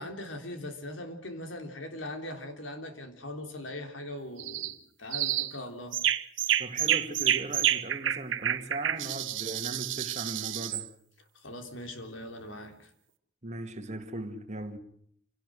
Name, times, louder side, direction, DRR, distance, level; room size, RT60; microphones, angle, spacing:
voice 1, 0.0-5.9 11.4-12.9, left 1 dB, 85° left, 3.6 m, -40 dB
sound 1, 4.4-4.7 5.1-5.5 5.9-10.9, right 11 dB, 80° right, 1.1 m, -29 dB
voice 2, 6.6-10.9 13.4-14.8, right 2 dB, 40° right, 2.1 m, -38 dB
27.5 x 18.0 x 6.4 m
head